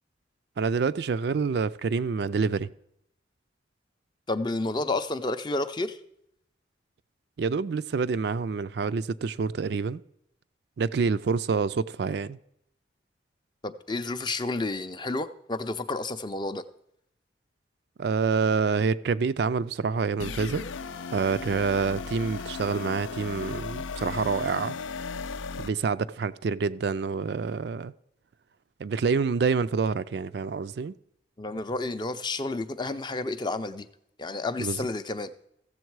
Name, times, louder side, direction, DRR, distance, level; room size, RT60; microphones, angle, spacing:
voice 1, 0.6-2.7 7.4-10.0 10.8-12.4 18.0-20.6 21.1-24.8 25.6-27.9 28.8-30.9 34.6-34.9, right 5 dB, 60° right, 0.3 m, -27 dB
voice 2, 4.3-6.0 13.6-16.6 31.4-33.9 34.2-35.5, left 2 dB, 25° left, 0.5 m, -31 dB
sound 1, 20.2-25.7, left 5 dB, 90° left, 0.5 m, -36 dB
15.0 x 7.2 x 4.6 m
head